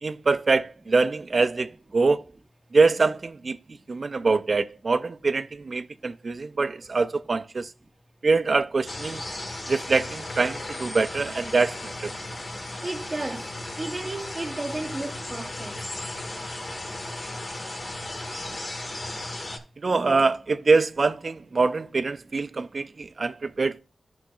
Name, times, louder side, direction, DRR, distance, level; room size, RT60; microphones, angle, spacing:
voice 1, 0.0-2.2 2.7-3.6 3.9-7.7 8.2-9.2 9.7-12.1 19.8-23.8, right 4 dB, 50° right, 0.4 m, -24 dB
sound 1, 8.9-19.6, left 1 dB, 45° left, 1.5 m, -35 dB
voice 2, 12.8-13.5 13.8-15.8, right 2 dB, 25° right, 0.8 m, -33 dB
11.5 x 6.2 x 2.3 m
wide cardioid pair, 80°, 0 cm